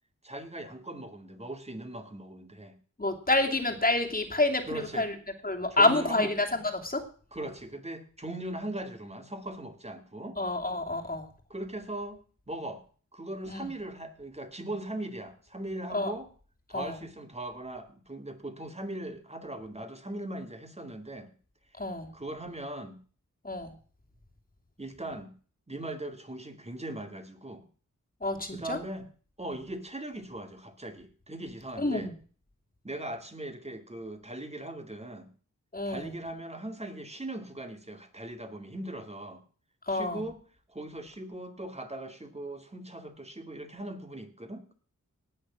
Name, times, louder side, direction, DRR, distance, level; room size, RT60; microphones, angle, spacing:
voice 1, 0.2-2.8 4.7-5.1 5.7-6.3 7.3-10.4 11.5-12.2 12.5-12.8 13.1-16.3 16.7-21.3 22.1-23.0 24.8-25.3 25.7-27.6 28.5-29.0 29.4-32.1 32.8-35.3 35.9-39.4 39.9-40.4 40.7-44.7, right 1 dB, 20° right, 6 dB, 2.3 m, -39 dB
voice 2, 3.0-5.1 5.4-7.0 10.4-11.3 13.5-13.7 15.9-16.1 16.7-17.0 21.8-22.1 23.4-23.7 28.2-28.8 31.8-32.1 35.7-36.2 39.8-40.2, left 2 dB, 25° left, 3 dB, 2.6 m, -28 dB
18.0 x 6.6 x 6.2 m, 0.42 s
wide cardioid pair, 75°, 32 cm